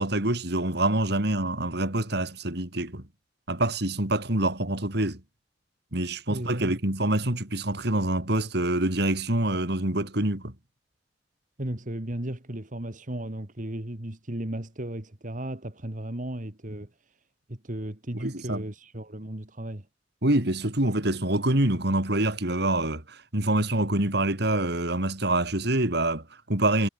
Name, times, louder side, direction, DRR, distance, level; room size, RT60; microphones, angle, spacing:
voice 1, 0.0-3.0 3.5-5.2 5.9-10.5 18.2-18.6 20.2-26.9, right 1 dB, 65° right, 3.7 m, -26 dB
voice 2, 6.3-6.8 11.6-17.2 17.5-19.9, right 1 dB, 45° right, 2.3 m, -35 dB
head